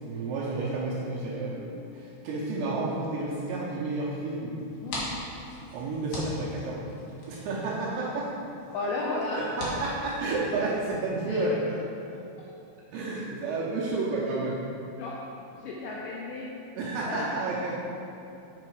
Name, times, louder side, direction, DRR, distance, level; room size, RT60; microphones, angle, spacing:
voice 1, 0.0-4.6 5.7-6.9 7.3-8.3 9.3-11.8 12.1-12.2 12.9-14.6 16.8-17.7, right 2 dB, 75° right, -6 dB, 2.8 m, -31 dB
sound 1, 4.6-10.9, left 1 dB, 65° left, 2.0 m, -41 dB
voice 2, 8.7-9.4 11.3-11.6 15.0-15.2 15.5-16.5 17.0-17.4, left 3 dB, 85° left, -3 dB, 2.5 m, -33 dB
6.7 x 6.7 x 4.7 m, 2.8 s
omnidirectional pair, 5.9 m